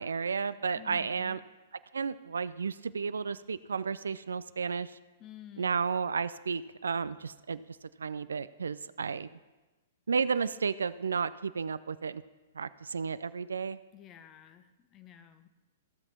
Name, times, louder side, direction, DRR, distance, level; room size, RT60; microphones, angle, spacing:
voice 1, 0.0-1.4 1.9-4.9 5.6-7.6 8.0-9.3 10.1-12.2 12.6-13.8, right 5 dB, 75° right, 16 dB, 0.3 m, -32 dB
voice 2, 0.7-1.4 5.2-5.8 13.9-15.5, left 10 dB, 30° left, 10 dB, 0.8 m, -51 dB
15.0 x 6.0 x 4.3 m, 1.1 s
figure-of-eight pair, 110°, 0 cm